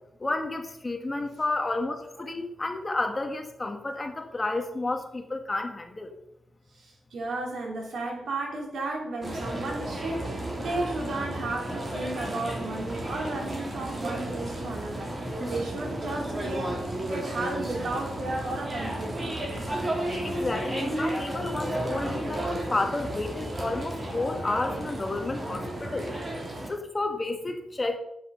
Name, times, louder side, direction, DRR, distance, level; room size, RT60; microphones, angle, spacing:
voice 1, 0.2-6.1 20.2-26.1 26.7-28.0, left 2 dB, 20° left, 5 dB, 1.3 m, -31 dB
voice 2, 6.7-19.3, right 2 dB, 75° right, -1 dB, 4.4 m, -34 dB
sound 1, 9.2-26.7, right 1 dB, 30° right, 3.2 m, -33 dB
11.0 x 7.4 x 7.0 m, 0.80 s
wide cardioid pair, 160°, 0 cm